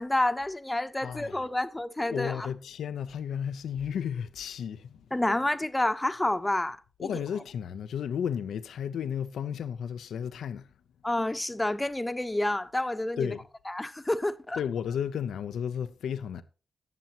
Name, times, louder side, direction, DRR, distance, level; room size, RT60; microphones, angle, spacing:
voice 1, 0.0-2.5 5.1-7.1 11.0-13.3 13.7-14.6, left 1 dB, 15° left, 0.9 m, -29 dB
voice 2, 1.0-1.4 2.1-5.0 7.0-10.6 13.2-13.4 14.6-16.4, left 8 dB, 85° left, 0.6 m, -33 dB
19.5 x 7.0 x 3.0 m
supercardioid pair, 50°, 0 cm